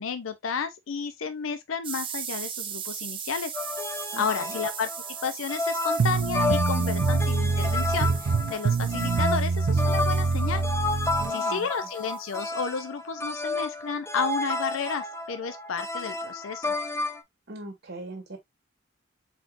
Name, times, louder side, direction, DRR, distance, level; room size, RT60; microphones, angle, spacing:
voice 1, 0.0-3.6 4.2-4.9 5.2-10.6 11.3-16.8, left 6 dB, 75° left, 0.6 m, -32 dB
sound 1, 1.8-12.5, right 8 dB, 25° right, 0.6 m, -39 dB
sound 2, 3.5-17.2, left 2 dB, 15° left, 0.6 m, -31 dB
voice 2, 4.1-4.6 11.2-11.7 17.5-18.4, right 2 dB, 55° right, 1.7 m, -40 dB
sound 3, 6.0-11.3, right 4 dB, 70° right, 0.5 m, -25 dB
4.3 x 4.3 x 2.5 m
head